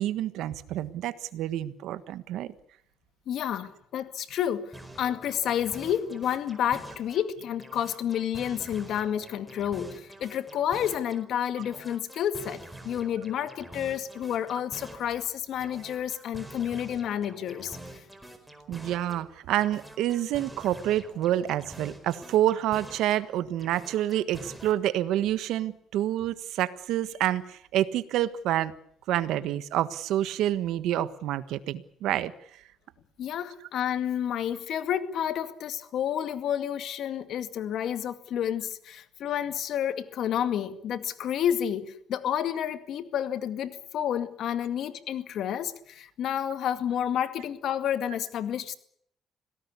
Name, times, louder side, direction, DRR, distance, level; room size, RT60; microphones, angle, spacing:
voice 1, 0.0-2.5 18.7-28.7 29.1-32.3, right 12 dB, 90° right, 13 dB, 1.4 m, -28 dB
voice 2, 3.3-17.8 33.2-48.7, left 9 dB, 75° left, 10 dB, 2.2 m, -30 dB
sound 1, 4.7-7.3 7.6-11.3 11.6-15.3 15.6-19.3 19.6-23.3 23.6-24.7, right 1 dB, 5° right, 4.7 m, -46 dB
26.0 x 18.0 x 8.4 m, 0.69 s
cardioid pair, 90°, 0 cm